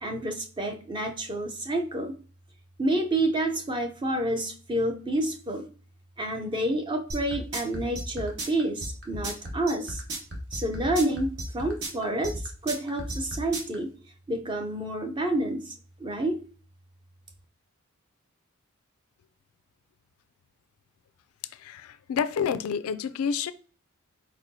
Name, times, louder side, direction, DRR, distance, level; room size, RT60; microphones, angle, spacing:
voice 1, 0.0-2.1 2.8-5.6 6.2-10.0 10.5-12.3 12.6-13.9 14.3-15.7 16.0-16.4, right 1 dB, 20° right, 5 dB, 0.6 m, -29 dB
sound 1, 7.1-13.7, right 1 dB, 55° right, 1.1 m, -34 dB
voice 2, 21.6-23.5, left 7 dB, 75° left, 13 dB, 0.4 m, -29 dB
4.4 x 4.2 x 2.7 m, 0.39 s
head